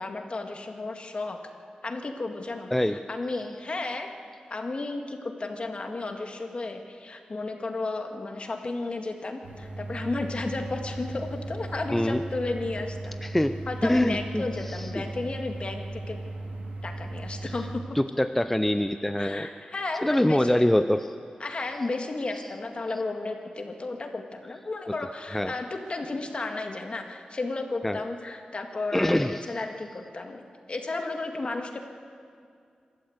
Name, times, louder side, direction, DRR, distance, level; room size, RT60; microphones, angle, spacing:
voice 1, 0.0-1.4 1.8-4.1 4.5-13.2 13.7-16.2 16.8-17.8 19.2-20.5 21.4-31.8, left 3 dB, 45° left, 4 dB, 2.0 m, -33 dB
voice 2, 2.7-3.0 11.9-12.2 13.2-15.1 17.9-19.5 20.0-21.1 25.3-25.5 27.8-28.0 28.9-29.5, left 1 dB, 10° left, 9 dB, 0.5 m, -25 dB
sound 1, 9.4-17.8, right 2 dB, 80° right, 3.1 m, -37 dB
26.5 x 13.0 x 8.1 m, 2.3 s
wide cardioid pair, 90°, 3 cm